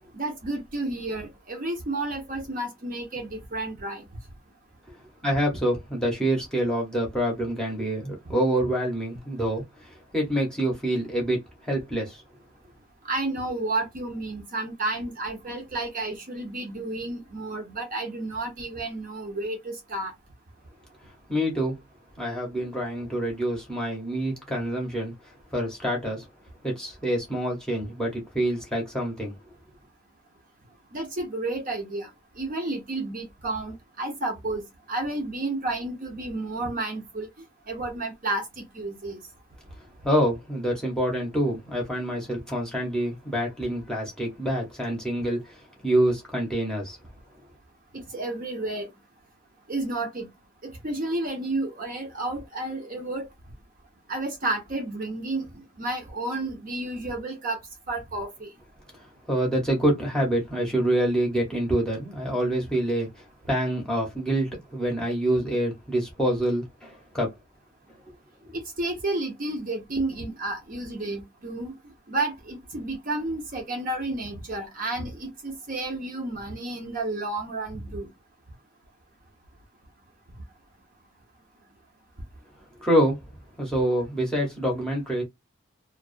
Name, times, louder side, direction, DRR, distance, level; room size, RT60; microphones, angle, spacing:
voice 1, 0.1-4.1 13.1-20.1 30.9-32.1 32.4-37.3 37.7-39.2 47.9-48.9 49.7-50.3 50.6-53.3 54.1-57.6 57.9-58.5 68.5-71.7 72.1-78.1, right 2 dB, 40° right, 0.7 m, -31 dB
voice 2, 5.2-12.2 21.3-21.8 22.2-25.1 25.5-26.2 26.6-29.3 40.0-47.0 59.3-67.3 82.8-83.2 83.6-85.2, right 1 dB, 5° left, 0.8 m, -26 dB
2.3 x 2.2 x 2.5 m
head